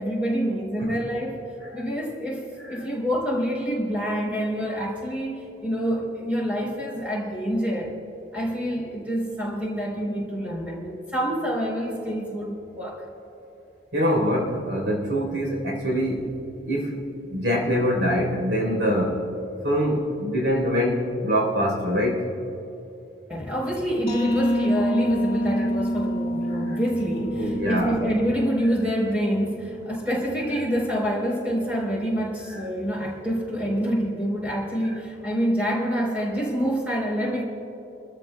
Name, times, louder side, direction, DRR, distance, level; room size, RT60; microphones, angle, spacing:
voice 1, 0.0-1.5 1.7-7.9 8.3-13.0 23.3-37.4, equal, 10° right, -4 dB, 4.0 m, -27 dB
voice 2, 13.9-16.3 16.7-17.0 17.3-19.3 19.6-22.2 25.6-25.7 26.7-26.8 27.3-28.0, equal, 80° right, -1 dB, 3.9 m, -24 dB
sound 1, 24.1-29.6, equal, 30° left, 1.7 m, -27 dB
29.5 x 13.5 x 2.3 m, 2.9 s
head